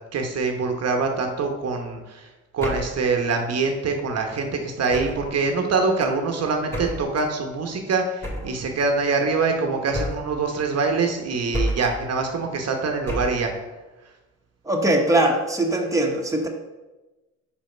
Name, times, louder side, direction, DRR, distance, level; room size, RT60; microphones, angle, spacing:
voice 1, 0.1-2.3 2.5-13.5, right 4 dB, 55° right, 3 dB, 1.0 m, -24 dB
sound 1, 2.6-3.0 4.9-5.3 6.7-7.1 8.2-8.6 9.9-10.4 11.5-12.0 13.1-13.5, equal, 10° left, 2.0 m, -29 dB
voice 2, 14.6-16.5, right 1 dB, 10° right, 0 dB, 1.1 m, -21 dB
5.3 x 5.1 x 5.0 m, 1.1 s
cardioid pair, 90°, 30 cm